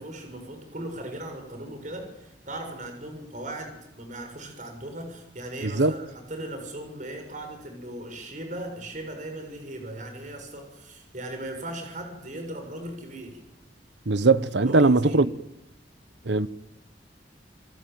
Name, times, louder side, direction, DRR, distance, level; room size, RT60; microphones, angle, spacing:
voice 1, 0.0-13.4 14.6-15.2, right 1 dB, 45° right, 6.7 m, -38 dB
voice 2, 5.6-5.9 14.1-15.3 16.3-16.5, right 3 dB, 80° right, 1.1 m, -20 dB
28.0 x 23.0 x 9.3 m
head